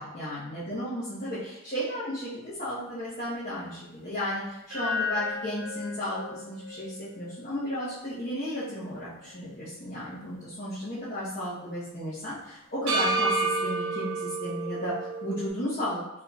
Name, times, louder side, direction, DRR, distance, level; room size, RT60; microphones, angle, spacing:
voice 1, 0.0-14.9 15.2-16.0, equal, 40° left, -11 dB, 1.0 m, -34 dB
sound 1, 4.7-9.0 9.4-9.5 12.9-15.5, right 2 dB, 85° right, 1.4 m, -32 dB
4.1 x 3.6 x 2.3 m, 0.91 s
head